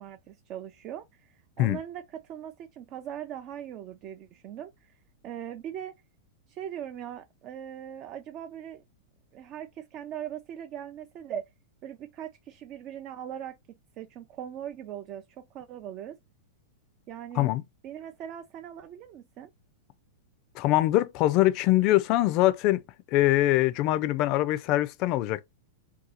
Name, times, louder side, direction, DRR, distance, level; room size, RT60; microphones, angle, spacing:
voice 1, 0.0-5.0 5.2-5.9 6.5-8.8 9.3-11.5 11.8-16.2 17.1-17.5 17.8-19.5, right 10 dB, 40° right, 0.4 m, -40 dB
voice 2, 20.6-22.8 23.1-25.4, left 16 dB, 45° left, 0.4 m, -23 dB
2.7 x 2.3 x 4.0 m
hypercardioid pair, 110°, 0 cm